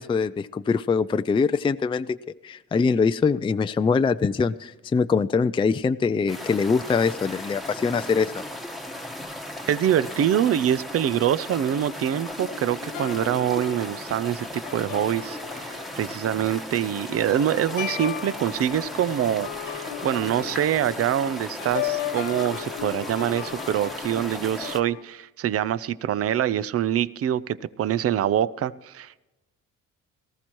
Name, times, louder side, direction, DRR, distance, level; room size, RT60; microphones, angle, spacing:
voice 1, 0.0-2.2 2.4-8.4, left 5 dB, 15° left, 11 dB, 0.4 m, -23 dB
sound 1, 6.3-24.8, left 1 dB, ahead, 1.3 m, -37 dB
voice 2, 9.7-29.2, right 10 dB, 50° right, 18 dB, 0.6 m, -25 dB
sound 2, 12.4-25.0, left 12 dB, 85° left, 0.8 m, -36 dB
19.0 x 14.5 x 3.0 m, 1.1 s
cardioid pair, 90°, 30 cm